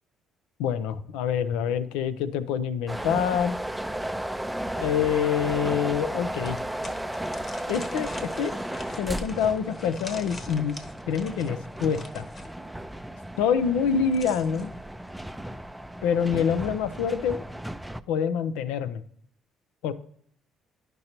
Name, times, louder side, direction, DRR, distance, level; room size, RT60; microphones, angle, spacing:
voice 1, 0.6-3.6 4.8-6.6 7.7-8.5 9.0-10.8 11.1-12.2 13.4-14.7 16.0-17.5 18.1-19.0 19.8-19.9, left 7 dB, 85° left, 13 dB, 0.5 m, -26 dB
sound 1, 2.9-18.0, right 1 dB, 5° right, 0.4 m, -34 dB
sound 2, 6.4-12.5 13.8-14.7, left 2 dB, 35° left, 1.1 m, -44 dB
10.5 x 5.3 x 2.9 m, 0.64 s
supercardioid pair, 70°, 0 cm